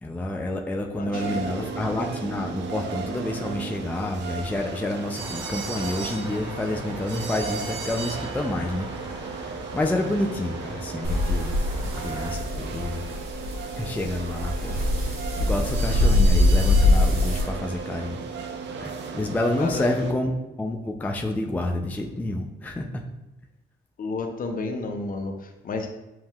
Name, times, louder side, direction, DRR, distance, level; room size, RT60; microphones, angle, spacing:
voice 1, 0.0-11.6 12.0-13.0 13.8-14.8 15.4-18.4 18.8-20.3 20.6-23.0, left 1 dB, 10° left, 2 dB, 0.4 m, -29 dB
voice 2, 0.9-1.7 19.6-20.1 24.0-25.9, left 3 dB, 45° left, 4 dB, 0.6 m, -31 dB
sound 1, 1.1-20.1, right 5 dB, 65° right, 0.6 m, -35 dB
sound 2, 5.2-12.3, equal, 20° right, 0.9 m, -40 dB
sound 3, 11.0-17.4, left 2 dB, 85° right, 1.1 m, -23 dB
7.2 x 2.7 x 2.3 m, 1.0 s
cardioid pair, 90°, 20 cm